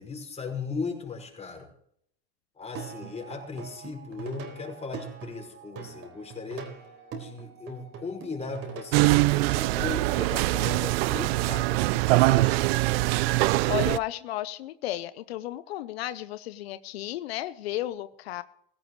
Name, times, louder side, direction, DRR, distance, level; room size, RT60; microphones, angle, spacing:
voice 1, 0.0-1.7 2.6-6.7 7.2-13.1, left 4 dB, 20° left, 1 dB, 5.2 m, -37 dB
Plucked string instrument, 2.6-9.0, right 7 dB, 50° right, 3.9 m, -42 dB
sound 1, 8.9-14.0, right 21 dB, 80° right, 0.5 m, -23 dB
voice 2, 13.7-18.4, left 14 dB, 90° left, 14 dB, 0.7 m, -33 dB
17.0 x 16.5 x 3.2 m, 0.69 s
supercardioid pair, 100°, 30 cm